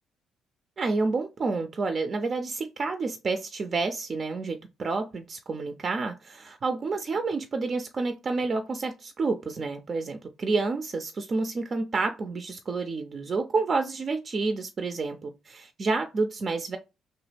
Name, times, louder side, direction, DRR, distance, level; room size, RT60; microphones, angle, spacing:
voice 1, 0.8-16.8, right 3 dB, 45° right, 0.4 m, -29 dB
3.0 x 2.2 x 3.2 m
supercardioid pair, 60°, 0 cm